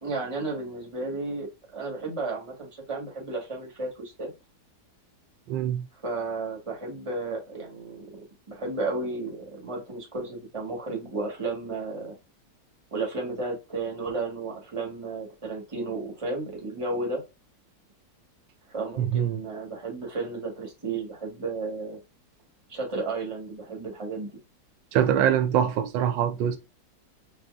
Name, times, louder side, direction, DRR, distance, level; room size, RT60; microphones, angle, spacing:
voice 1, 0.0-4.3 6.0-8.2 8.5-12.2 12.9-17.2 18.7-22.0 22.7-24.3, right 3 dB, 20° right, 1.3 m, -33 dB
voice 2, 5.5-5.9 19.0-19.3 24.9-26.6, right 9 dB, 90° right, 1.3 m, -24 dB
6.2 x 2.7 x 2.4 m
omnidirectional pair, 1.9 m